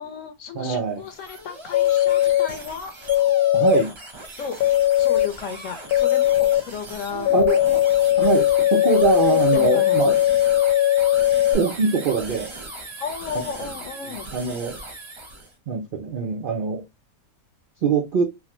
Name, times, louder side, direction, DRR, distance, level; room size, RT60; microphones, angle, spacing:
voice 1, 0.0-2.9 4.3-4.6 5.0-7.3 8.9-9.0 9.3-10.2 13.0-14.3, left 6 dB, 70° left, 0.9 m, -34 dB
voice 2, 0.5-1.0 3.5-3.9 7.3-7.6 8.2-10.1 11.5-12.5 13.6-13.7 14.0-14.8 15.7-16.8 17.8-18.2, right 6 dB, 80° right, 0.4 m, -23 dB
sound 1, 0.9-15.5, right 2 dB, 30° right, 0.5 m, -38 dB
sound 2, 1.7-2.5 3.1-3.8 4.6-5.3 5.9-6.6 7.3-11.6, left 13 dB, 90° left, 1.1 m, -19 dB
3.1 x 2.0 x 2.9 m
omnidirectional pair, 1.5 m